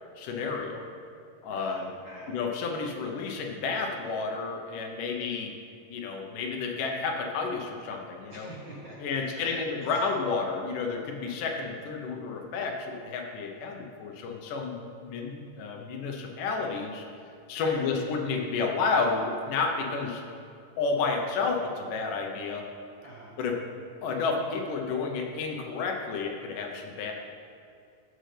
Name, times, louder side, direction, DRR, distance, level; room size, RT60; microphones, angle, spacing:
voice 1, 0.2-0.8 1.4-1.9 2.3-5.5 5.9-8.5 9.0-17.0 17.5-20.2 20.8-22.6 23.4-23.6 24.0-27.1, left 4 dB, 80° left, 2 dB, 2.6 m, -31 dB
voice 2, 1.5-2.3 8.3-9.6 9.8-10.0 17.6-17.8 23.0-23.4, right 1 dB, 55° right, -6 dB, 1.4 m, -46 dB
15.5 x 6.5 x 3.4 m, 2.4 s
omnidirectional pair, 3.8 m